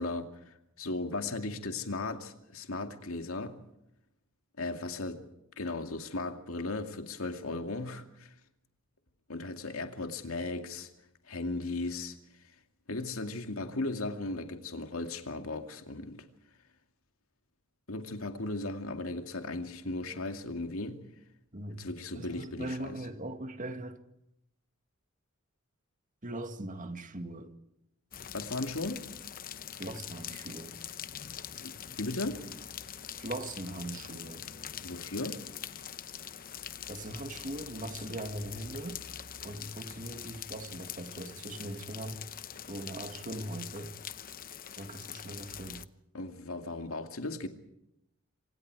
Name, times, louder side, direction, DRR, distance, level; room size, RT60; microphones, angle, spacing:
voice 1, 0.0-3.6 4.6-5.3 5.6-8.3 9.3-10.9 11.3-12.2 12.9-16.3 17.9-21.0 21.7-23.0 28.3-29.1 31.6-32.4 34.8-35.5 46.1-47.5, left 2 dB, 85° left, 2.3 m, -36 dB
voice 2, 22.1-24.0 26.2-27.5 29.8-30.7 33.1-34.5 36.9-39.0 39.4-42.2 42.7-44.0 44.8-45.9, right 1 dB, 40° right, 2.1 m, -40 dB
sound 1, 28.1-45.8, left 9 dB, 45° left, 0.9 m, -44 dB
28.0 x 25.5 x 4.8 m
head